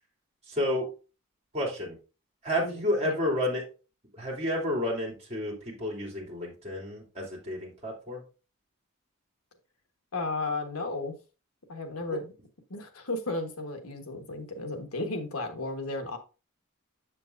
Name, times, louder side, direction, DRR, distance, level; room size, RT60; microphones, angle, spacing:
voice 1, 0.5-0.9 1.5-1.9 2.4-3.6 4.1-8.2, left 1 dB, 30° right, 3.0 m, -30 dB
voice 2, 2.6-3.1 10.1-11.1 11.7-12.3 12.7-16.2, left 2 dB, 90° left, 1.4 m, -34 dB
7.4 x 7.3 x 2.6 m
head